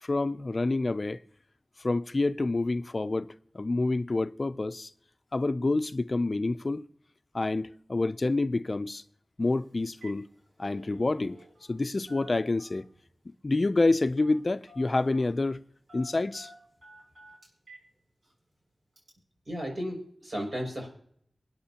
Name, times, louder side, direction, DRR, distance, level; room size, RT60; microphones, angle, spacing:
voice 1, 0.0-1.2 1.8-4.9 5.3-6.8 7.3-9.0 9.4-10.3 10.6-11.4 11.7-12.9 13.4-15.6 15.9-16.5, left 2 dB, 45° left, 0.4 m, -28 dB
Telephone, 9.4-9.6 9.9-10.2 10.5-11.8 12.1-13.0 14.2-14.4 14.7-15.4 15.9-17.9 18.2-18.3 19.0-19.1, right 1 dB, 70° right, 7.4 m, -52 dB
voice 2, 19.5-20.9, equal, 50° right, 6.2 m, -34 dB
27.0 x 9.4 x 2.9 m
wide cardioid pair, 80°, 0 cm